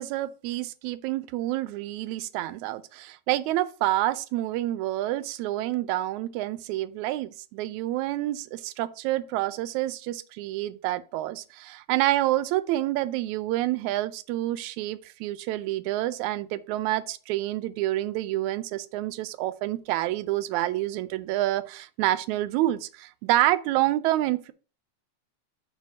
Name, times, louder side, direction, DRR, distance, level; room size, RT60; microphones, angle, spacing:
voice 1, 0.0-24.5, right 15 dB, 85° right, 1.9 m, -28 dB
6.3 x 4.5 x 5.3 m
omnidirectional pair, 3.3 m